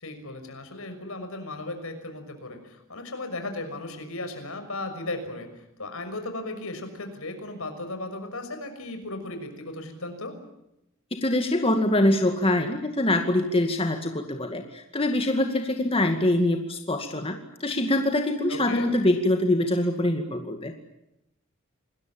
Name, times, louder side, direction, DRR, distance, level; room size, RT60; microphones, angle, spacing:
voice 1, 0.0-5.5 5.8-10.4 18.5-18.9, left 2 dB, 70° left, 7 dB, 6.1 m, -36 dB
voice 2, 11.1-20.7, left 1 dB, 25° left, 4 dB, 2.2 m, -24 dB
27.5 x 20.5 x 8.8 m, 0.86 s
head